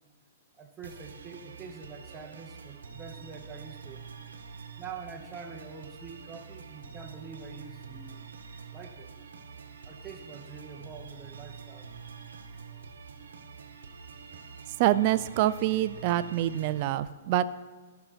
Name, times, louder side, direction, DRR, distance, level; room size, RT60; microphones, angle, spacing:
voice 1, 0.6-4.1 4.8-8.2 8.7-9.1 9.8-11.9, right 5 dB, 20° right, 1 dB, 0.9 m, -45 dB
sound 1, 0.8-16.8, right 6 dB, 85° right, 1.0 m, -46 dB
voice 2, 14.8-17.5, right 13 dB, 45° right, 14 dB, 0.4 m, -26 dB
13.5 x 5.7 x 4.1 m, 1.4 s
hypercardioid pair, 140°, 0 cm